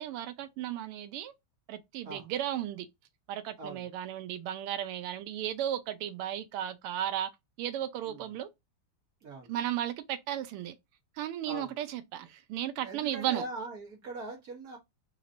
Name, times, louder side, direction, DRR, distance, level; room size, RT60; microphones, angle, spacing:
voice 1, 0.0-1.3 1.7-2.9 3.3-7.3 7.6-8.5 9.5-10.8 11.2-13.4, right 11 dB, 90° right, 1.5 m, -35 dB
voice 2, 11.5-11.8 12.8-14.8, right 2 dB, 50° right, 1.5 m, -41 dB
3.9 x 2.9 x 2.5 m
omnidirectional pair, 2.4 m